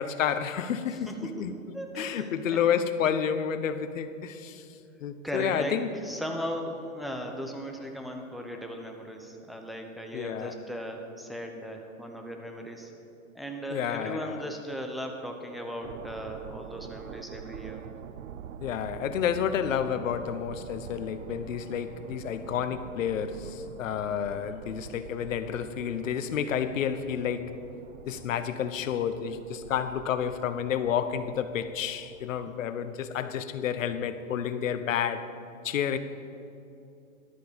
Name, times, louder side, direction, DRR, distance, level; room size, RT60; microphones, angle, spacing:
voice 1, 0.0-1.5 2.0-4.6 5.0-5.9 10.1-10.5 13.7-14.4 18.6-27.5 28.1-35.2 35.6-36.0, left 8 dB, 70° left, 11 dB, 1.0 m, -30 dB
voice 2, 1.7-2.6 5.2-5.8 6.0-12.9 13.3-17.8, equal, ahead, 2 dB, 0.9 m, -37 dB
sound 1, 15.8-32.5, right 9 dB, 75° right, 0.7 m, -46 dB
13.0 x 11.5 x 5.2 m, 2.8 s
hypercardioid pair, 135°, 41 cm